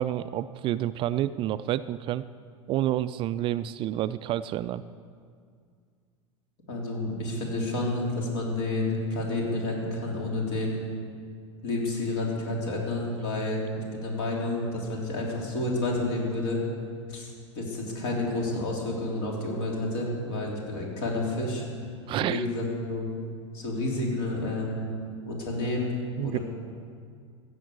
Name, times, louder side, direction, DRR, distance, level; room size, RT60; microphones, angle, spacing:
voice 1, 0.0-2.2 2.7-4.8 22.1-22.5 26.2-26.4, right 13 dB, 35° right, 15 dB, 0.3 m, -29 dB
voice 2, 6.7-10.8 11.6-13.6 13.9-16.6 17.1-21.6 22.1-23.1 23.5-24.9 25.3-25.9 26.2-26.4, left 2 dB, 60° left, -1 dB, 3.6 m, -30 dB
15.0 x 7.1 x 8.4 m, 2.1 s
figure-of-eight pair, 80°, 16 cm